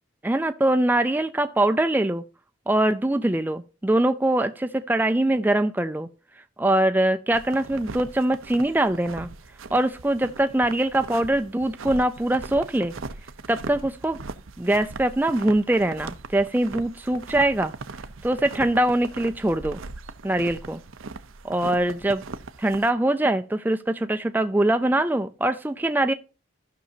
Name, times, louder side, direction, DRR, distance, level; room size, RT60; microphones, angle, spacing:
voice 1, 0.2-2.2 2.7-6.1 6.6-9.3 9.7-12.9 13.5-14.2 14.6-17.7 18.2-19.8 20.2-20.8 21.4-22.2 22.6-26.1, right 1 dB, 10° right, 0.4 m, -23 dB
sound 1, 7.3-22.9, right 3 dB, 85° right, 0.7 m, -39 dB
15.0 x 6.1 x 2.7 m
head